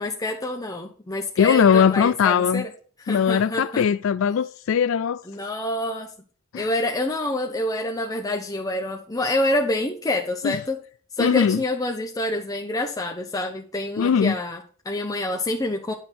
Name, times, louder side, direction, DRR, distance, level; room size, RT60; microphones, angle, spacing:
voice 1, 0.0-2.7 3.0-3.9 5.3-6.1 6.5-10.8 11.2-15.9, left 1 dB, 15° left, 0.7 m, -27 dB
voice 2, 1.4-2.7 3.1-5.2 6.5-6.7 10.4-10.6 11.2-11.6 14.0-14.4, left 7 dB, 65° left, 0.3 m, -20 dB
9.6 x 5.6 x 5.9 m
head